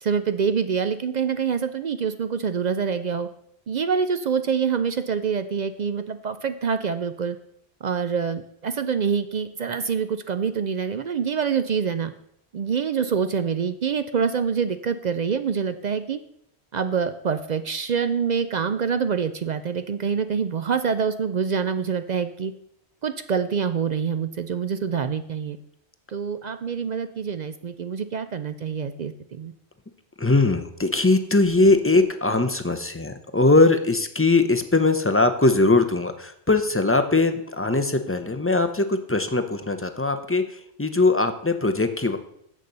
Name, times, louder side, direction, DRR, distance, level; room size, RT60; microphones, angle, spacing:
voice 1, 0.0-3.3 3.7-7.4 7.8-12.1 12.5-16.2 16.7-22.5 23.0-25.6 26.1-29.5, right 6 dB, 55° right, 10 dB, 0.5 m, -26 dB
voice 2, 30.2-42.2, left 3 dB, 15° left, 8 dB, 0.5 m, -21 dB
7.5 x 6.6 x 6.7 m, 0.71 s
omnidirectional pair, 1.1 m